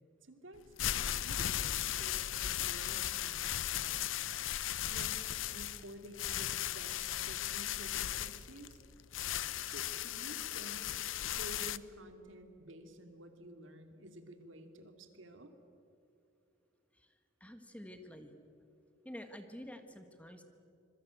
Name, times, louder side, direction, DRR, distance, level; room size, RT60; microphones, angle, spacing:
voice 1, 0.2-4.1 4.9-8.8 9.6-10.9 11.3-15.5, right 1 dB, 80° right, 6 dB, 2.5 m, -52 dB
sound 1, 0.6-11.8, left 11 dB, 85° left, 0.6 m, -37 dB
voice 2, 17.4-18.3 19.0-20.4, equal, 5° left, 7 dB, 1.6 m, -49 dB
26.0 x 22.0 x 8.2 m, 2.6 s
head